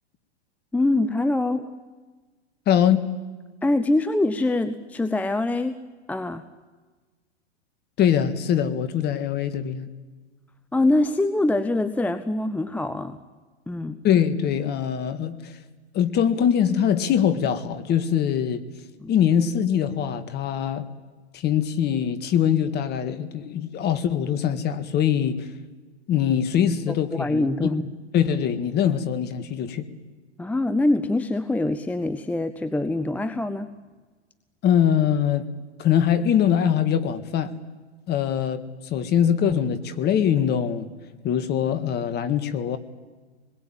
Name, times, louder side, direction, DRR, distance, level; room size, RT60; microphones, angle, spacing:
voice 1, 0.7-1.8 3.6-5.8 6.1-6.4 10.7-13.2 13.7-14.0 19.0-19.1 26.9-27.8 30.4-33.7, left 2 dB, 5° left, 11 dB, 0.7 m, -24 dB
voice 2, 2.7-3.1 8.0-9.9 14.0-15.5 15.9-18.6 19.1-20.9 21.3-25.4 26.1-27.7 28.1-29.9 34.6-35.5 35.8-37.5 38.1-40.9 41.2-42.8, left 9 dB, 30° left, 11 dB, 1.8 m, -22 dB
26.0 x 21.0 x 9.0 m, 1.3 s
hypercardioid pair, 115°, 33 cm